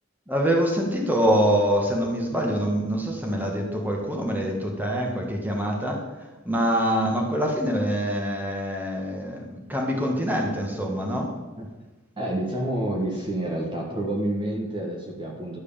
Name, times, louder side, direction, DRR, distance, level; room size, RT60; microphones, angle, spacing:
voice 1, 0.3-6.0 6.5-11.3, equal, 10° right, 0 dB, 1.8 m, -25 dB
voice 2, 12.2-15.6, right 1 dB, 25° right, -1 dB, 1.7 m, -28 dB
11.5 x 6.6 x 7.1 m, 1.2 s
head